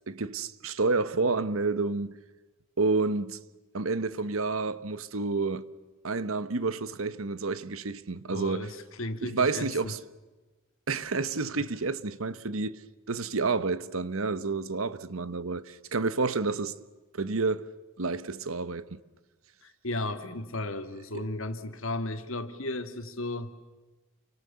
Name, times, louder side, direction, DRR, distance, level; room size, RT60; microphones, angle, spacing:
voice 1, 0.1-2.1 2.8-3.4 3.7-5.7 6.0-8.7 9.2-10.0 10.9-12.8 13.1-16.7 17.1-17.7 18.0-19.0 21.1-21.2, right 3 dB, 80° right, 1.1 m, -29 dB
voice 2, 8.3-10.0 19.6-23.5, left 2 dB, 70° left, 2.3 m, -35 dB
30.0 x 24.5 x 7.0 m
head